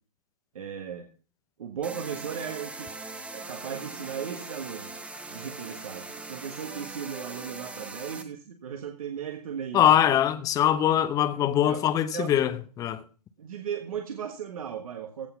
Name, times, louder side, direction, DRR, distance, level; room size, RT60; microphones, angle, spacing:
voice 1, 0.5-1.1 1.6-2.9 3.3-4.9 5.3-9.9 11.6-11.8 12.1-12.3 13.4-15.3, right 8 dB, 60° right, 1.6 m, -36 dB
sound 1, 1.8-8.2, right 3 dB, 5° right, 1.0 m, -41 dB
voice 2, 9.7-13.0, left 11 dB, 15° left, 0.8 m, -23 dB
16.0 x 6.0 x 5.7 m
figure-of-eight pair, 120°, 20 cm